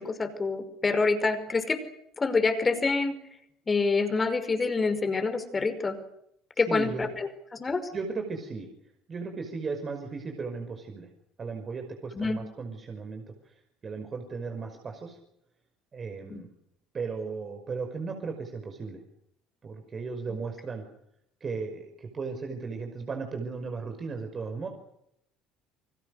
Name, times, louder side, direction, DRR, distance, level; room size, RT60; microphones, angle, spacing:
voice 1, 0.0-1.8 2.2-3.1 3.7-6.0 6.6-7.9 12.2-12.4 16.3-16.4, left 4 dB, 25° left, 10 dB, 5.4 m, -27 dB
voice 2, 6.6-7.1 7.9-8.7 9.1-11.1 11.4-13.5 13.8-15.2 15.9-16.5 16.9-19.0 19.6-20.8 21.4-24.7, right 4 dB, 35° right, 4 dB, 5.4 m, -36 dB
29.0 x 24.5 x 6.7 m, 0.75 s
hypercardioid pair, 60°, 0 cm